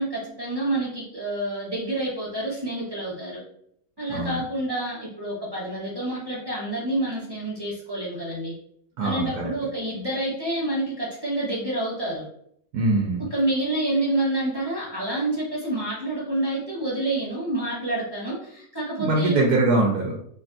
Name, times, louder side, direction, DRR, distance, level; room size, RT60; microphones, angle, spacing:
voice 1, 0.0-3.4 4.0-8.5 9.0-12.2 13.3-19.4, right 1 dB, 25° right, -6 dB, 0.6 m, -28 dB
voice 2, 4.1-4.4 9.0-9.5 12.7-13.3 19.0-20.1, right 2 dB, 85° right, -2 dB, 1.2 m, -22 dB
3.2 x 2.5 x 2.6 m, 0.68 s
omnidirectional pair, 1.6 m